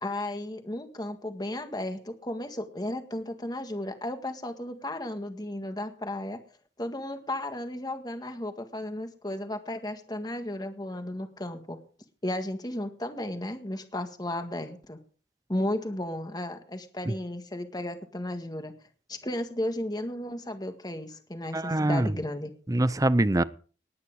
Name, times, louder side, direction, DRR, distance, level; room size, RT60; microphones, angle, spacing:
voice 1, 0.0-6.4 6.8-11.8 12.2-15.0 15.5-18.7 19.1-22.5, left 1 dB, 25° left, 7 dB, 1.7 m, -34 dB
voice 2, 21.5-22.1 22.7-23.4, right 1 dB, 20° right, 17 dB, 0.6 m, -24 dB
19.0 x 9.7 x 4.8 m, 0.41 s
head